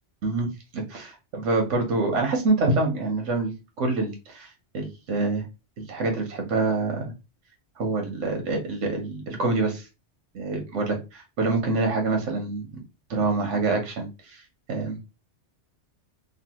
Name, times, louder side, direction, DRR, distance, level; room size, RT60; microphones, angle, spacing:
voice 1, 0.2-5.4 5.8-7.1 7.8-9.9 10.3-12.7 13.1-14.4 14.7-15.0, right 3 dB, 90° right, 2 dB, 1.1 m, -26 dB
3.1 x 2.2 x 2.9 m, 0.27 s
omnidirectional pair, 1.2 m